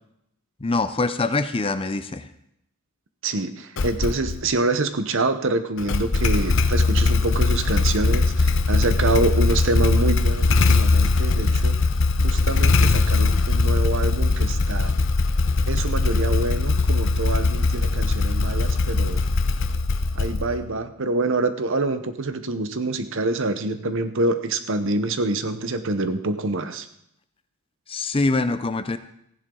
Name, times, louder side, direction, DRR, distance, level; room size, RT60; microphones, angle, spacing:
voice 1, 0.6-2.3 27.9-29.0, left 3 dB, 25° left, 11 dB, 0.5 m, -24 dB
voice 2, 3.2-11.8 12.2-14.9 15.7-19.2 20.1-26.9, right 2 dB, 60° right, 10 dB, 0.9 m, -26 dB
Motorcycle / Engine starting, 3.8-4.4 5.8-20.7, left 3 dB, 55° left, 0.8 m, -20 dB
15.0 x 11.0 x 3.8 m, 0.75 s
head